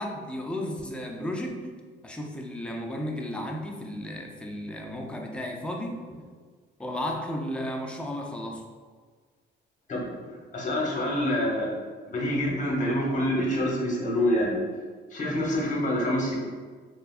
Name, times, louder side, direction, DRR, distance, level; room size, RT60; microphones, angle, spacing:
voice 1, 0.0-1.8 2.0-6.0 6.8-8.7, left 1 dB, 5° left, 1 dB, 0.3 m, -34 dB
voice 2, 10.5-11.7 12.1-14.5 15.1-16.3, left 1 dB, 40° left, -3 dB, 0.9 m, -26 dB
3.3 x 2.1 x 2.3 m, 1.5 s
cardioid pair, 90°, 20 cm